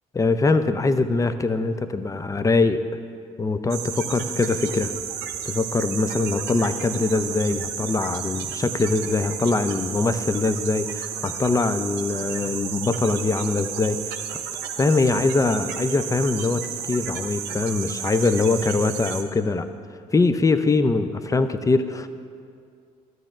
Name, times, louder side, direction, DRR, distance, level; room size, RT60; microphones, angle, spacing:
voice 1, 0.1-2.8 3.4-4.9 5.4-14.2 14.8-19.6 20.1-22.1, left 3 dB, 20° left, 11 dB, 0.5 m, -22 dB
sound 1, 3.7-19.2, right 8 dB, 70° right, 0.7 m, -32 dB
13.0 x 9.2 x 2.5 m, 2.3 s
hypercardioid pair, 50°, 17 cm